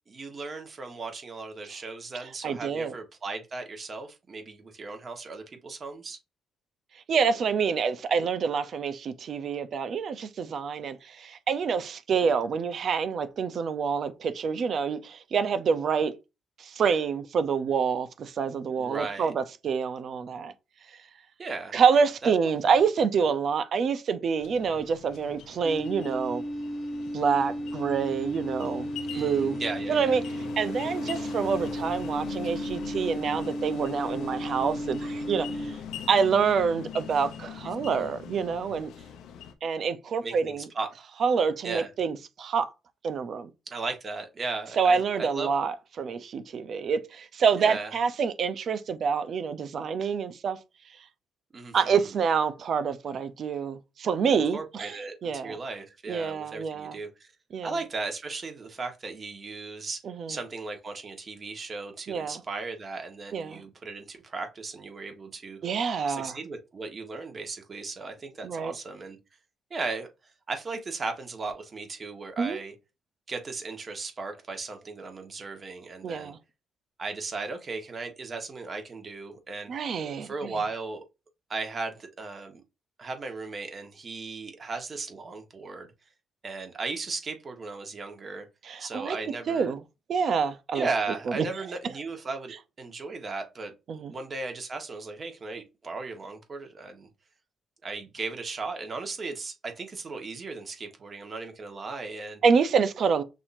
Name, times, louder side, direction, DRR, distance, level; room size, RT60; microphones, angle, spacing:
voice 1, 0.1-6.2 18.8-19.3 21.4-21.8 22.2-22.3 29.1-30.2 37.9-38.1 40.2-40.9 41.6-41.9 43.7-45.5 47.6-47.9 51.5-52.1 54.2-57.3 57.6-60.0 60.3-65.6 66.1-69.2 69.7-70.1 70.5-72.7 73.3-76.3 77.0-79.7 80.2-81.0 81.5-82.6 83.0-85.9 86.4-88.5 88.8-89.7 90.7-93.7 94.0-97.1 97.8-102.4, right 3 dB, 40° right, 1.5 m, -36 dB
voice 2, 2.4-2.9 7.1-16.1 16.6-20.5 21.7-26.4 27.1-29.6 29.9-30.2 30.6-35.8 36.1-38.9 39.6-40.7 41.2-42.7 43.0-43.5 44.8-50.6 51.7-55.6 56.1-57.0 57.5-57.7 60.0-60.4 62.1-62.4 63.3-63.6 65.6-66.4 68.4-68.7 72.4-72.6 76.0-76.4 79.7-80.5 88.6-89.2 89.5-89.8 90.1-90.9 91.3-91.5 93.9-94.1 102.4-103.2, right 6 dB, 60° right, 0.7 m, -27 dB
sound 1, 24.4-39.5, left 8 dB, 85° left, 0.7 m, -42 dB
sound 2, 25.6-35.7, equal, 10° left, 1.1 m, -34 dB
6.2 x 2.9 x 2.7 m
cardioid pair, 90°, 0 cm